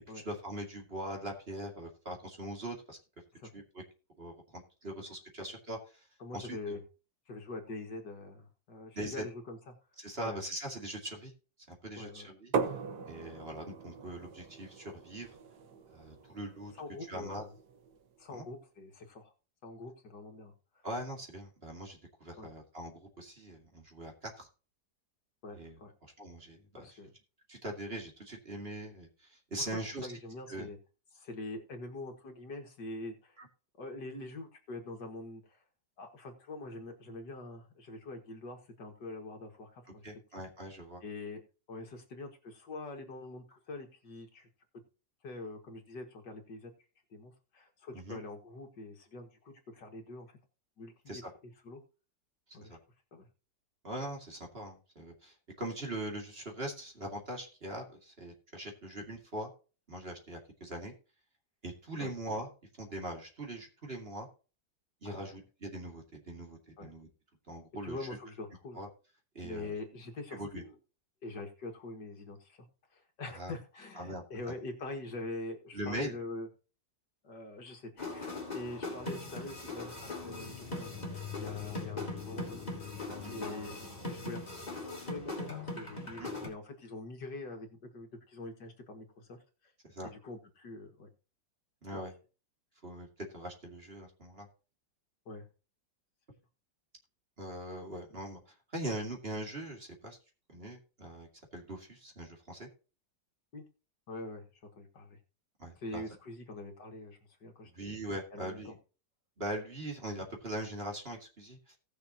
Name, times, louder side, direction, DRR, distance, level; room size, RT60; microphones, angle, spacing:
voice 1, 0.2-3.0 3.5-3.8 4.2-5.8 6.3-6.8 8.9-9.2 10.0-11.3 11.7-12.5 13.1-15.3 15.9-16.7 17.1-17.4 18.3-18.5 20.8-24.5 25.5-25.7 26.0-26.9 27.5-30.1 30.5-30.7 33.4-33.5 40.0-41.0 47.9-48.2 51.1-51.2 52.7-52.8 53.8-59.5 59.9-60.9 61.6-62.5 62.8-64.3 65.0-67.1 67.5-68.0 68.8-68.9 69.3-69.7 70.3-70.6 73.4-73.5 74.0-74.2 75.7-76.1 83.2-83.3 86.2-86.3 89.8-90.1 91.8-92.1 92.8-93.1 93.3-94.5 97.4-98.4 98.7-100.2 100.5-102.7 105.6-106.0 107.7-108.8 109.4-111.8, right 1 dB, 30° right, 1 dB, 2.4 m, -41 dB
voice 2, 6.2-6.8 7.3-9.7 10.2-10.4 12.0-12.3 16.2-16.4 16.7-17.5 18.2-19.3 19.6-20.9 22.4-22.5 25.4-25.9 26.8-27.1 29.6-30.8 31.1-33.4 33.8-35.6 36.0-40.1 41.0-41.4 41.7-44.5 45.2-46.7 47.1-50.4 50.8-51.2 51.6-51.8 52.5-52.8 53.1-53.3 62.0-62.1 65.0-65.3 66.8-66.9 67.8-68.8 69.4-70.8 71.2-72.7 72.9-76.5 77.2-83.0 83.3-89.7 90.0-91.1 91.9-92.0 95.3-95.5 103.5-103.6 104.1-104.4 104.8-105.2 105.8-107.9 108.3-108.7, left 2 dB, 65° left, 4 dB, 2.4 m, -44 dB
sound 1, 12.5-18.2, right 5 dB, 65° right, 1.6 m, -40 dB
sound 2, 78.0-86.5, left 2 dB, 20° left, 3.1 m, -40 dB
18.0 x 6.7 x 2.9 m, 0.34 s
omnidirectional pair, 2.0 m